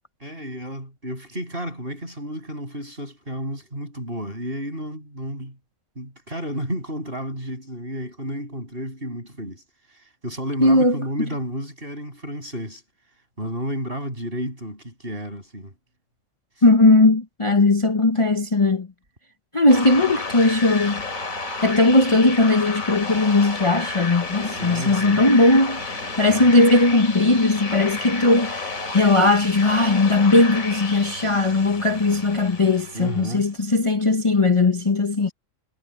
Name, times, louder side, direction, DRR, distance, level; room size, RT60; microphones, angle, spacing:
voice 1, 0.2-5.6 5.9-9.6 9.9-12.8 13.4-15.7 24.6-25.2 26.2-26.5 32.9-33.5, equal, 45° right, 8.3 m, -32 dB
voice 2, 10.6-11.0 16.6-18.9 19.5-21.0 21.6-35.3, left 2 dB, 25° left, 1.0 m, -18 dB
sound 1, 19.7-33.4, left 3 dB, 85° left, 3.3 m, -32 dB
omnidirectional pair, 1.4 m